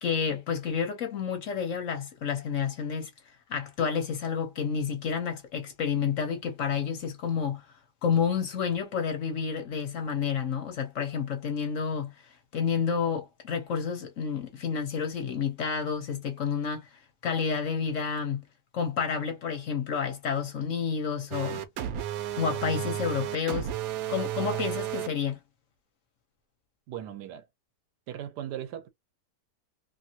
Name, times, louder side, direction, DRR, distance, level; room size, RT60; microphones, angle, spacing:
voice 1, 0.0-3.1 3.5-7.6 8.0-12.1 12.5-16.9 17.2-18.4 18.7-21.6 22.4-23.7 24.1-25.4, left 6 dB, 55° left, 1.0 m, -30 dB
sound 1, 21.3-25.1, right 11 dB, 70° right, 1.0 m, -32 dB
voice 2, 26.9-27.4 28.1-28.9, right 11 dB, 90° right, 1.3 m, -38 dB
2.9 x 2.7 x 2.7 m
omnidirectional pair, 1.7 m